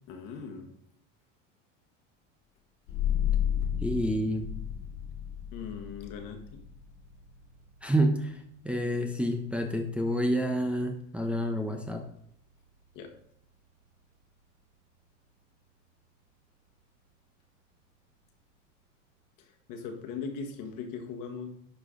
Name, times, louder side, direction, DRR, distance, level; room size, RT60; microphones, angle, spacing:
voice 1, 0.1-0.7 5.5-6.6 12.9-13.1 19.4-21.5, left 5 dB, 60° left, 4 dB, 1.7 m, -39 dB
sound 1, 2.9-14.1, left 9 dB, 85° left, 2.6 m, -36 dB
voice 2, 3.8-4.5 7.8-8.3 8.6-12.0, equal, 5° right, 2 dB, 0.8 m, -28 dB
10.5 x 4.9 x 3.8 m, 0.69 s
supercardioid pair, 105°, 37 cm